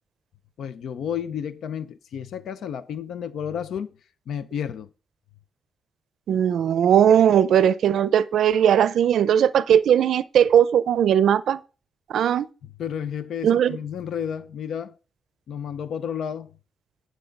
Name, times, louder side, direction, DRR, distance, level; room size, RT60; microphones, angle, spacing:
voice 1, 0.6-4.0 4.3-4.9 12.6-14.9 15.5-16.5, left 8 dB, 80° left, 0.6 m, -31 dB
voice 2, 6.3-11.6 12.1-12.5 13.4-13.8, right 9 dB, 80° right, 0.5 m, -18 dB
10.0 x 6.3 x 5.2 m
wide cardioid pair, 170°, 0 cm